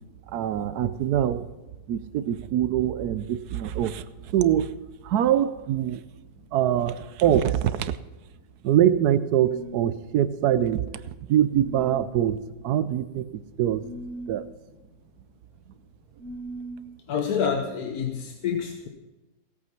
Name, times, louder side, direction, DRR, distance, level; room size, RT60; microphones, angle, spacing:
voice 1, 0.3-1.5 1.9-4.1 4.3-4.8 5.0-6.0 6.5-8.0 8.6-10.9 11.3-13.9 14.3-14.4, right 11 dB, 80° right, 14 dB, 1.2 m, -24 dB
sound 1, 9.3-9.9 11.5-12.2 13.8-14.4 16.2-16.8, equal, 55° right, 1.4 m, -39 dB
voice 2, 17.1-18.9, left 7 dB, 70° left, 5 dB, 1.4 m, -27 dB
17.0 x 8.4 x 5.8 m, 1.1 s
omnidirectional pair, 1.7 m